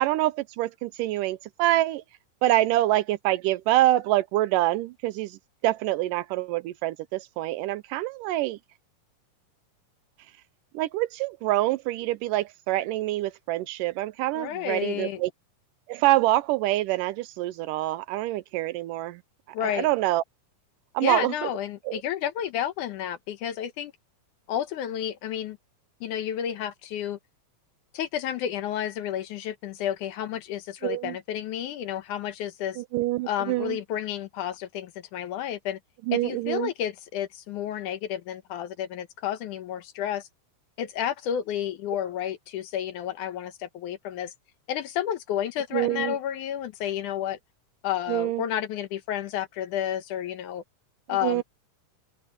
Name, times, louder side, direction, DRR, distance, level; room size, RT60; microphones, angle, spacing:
voice 1, 0.0-2.0 2.4-8.6 10.7-15.3 15.9-19.2 19.6-20.2 20.9-21.5 21.9-22.0 30.8-31.2 32.8-33.8 36.1-36.7 45.7-46.2 48.1-48.4 51.2-51.4, right 16 dB, 80° right, 2.1 m, -26 dB
voice 2, 14.3-15.2 19.5-19.9 21.0-23.9 24.5-25.6 26.0-27.2 27.9-32.8 33.2-35.8 36.1-40.3 40.8-44.3 44.7-47.4 47.8-50.6 51.1-51.4, left 10 dB, 70° left, 2.3 m, -31 dB
omnidirectional pair, 4.0 m